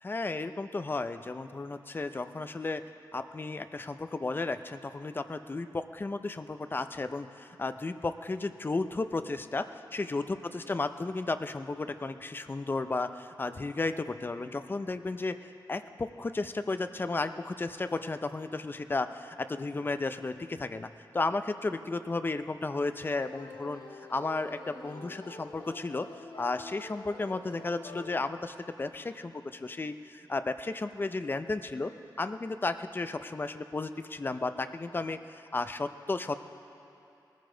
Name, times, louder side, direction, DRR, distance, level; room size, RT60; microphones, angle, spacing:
voice 1, 0.0-2.8 3.1-15.4 15.7-23.8 24.1-26.1 26.4-31.9 32.2-36.4, left 3 dB, 25° left, 10 dB, 0.5 m, -33 dB
sound 1, 23.1-28.1, left 2 dB, 85° left, 1.5 m, -47 dB
19.5 x 14.5 x 3.9 m, 2.7 s
wide cardioid pair, 155°, 8 cm